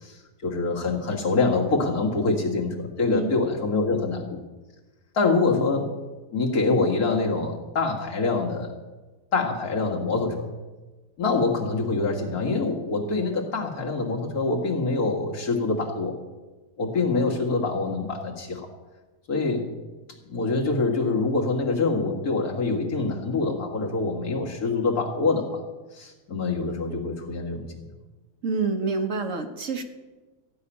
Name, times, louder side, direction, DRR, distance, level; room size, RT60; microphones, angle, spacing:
voice 1, 0.0-4.4 5.1-5.9 6.3-8.7 9.3-10.5 11.2-16.2 16.8-18.6 19.3-19.7 20.3-25.6 25.9-27.7, left 3 dB, 65° left, -1 dB, 2.4 m, -25 dB
voice 2, 28.4-29.8, right 4 dB, 55° right, 5 dB, 1.3 m, -27 dB
15.0 x 5.8 x 9.8 m, 1.2 s
omnidirectional pair, 1.7 m